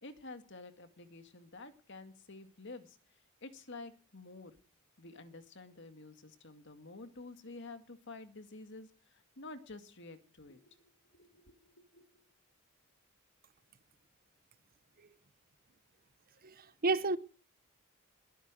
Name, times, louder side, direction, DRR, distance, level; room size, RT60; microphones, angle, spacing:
voice 1, 0.0-3.0 3.4-4.6 5.0-12.2, left 3 dB, 55° left, 2.1 m, -50 dB
voice 2, 16.4-17.2, right 3 dB, 40° right, 0.8 m, -31 dB
21.0 x 10.5 x 6.3 m
head